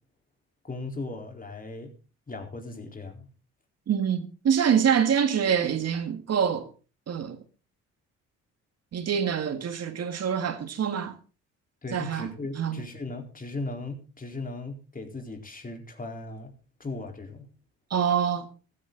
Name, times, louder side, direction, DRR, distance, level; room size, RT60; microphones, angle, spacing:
voice 1, 0.6-1.9 2.3-3.3 11.8-16.5 16.8-17.5, left 2 dB, 30° left, 4.2 m, -37 dB
voice 2, 3.9-6.7 7.1-7.4 8.9-11.2 11.9-12.8 17.9-18.5, right 8 dB, 55° right, 1.9 m, -25 dB
15.0 x 13.5 x 4.0 m
cardioid pair, 90°, 30 cm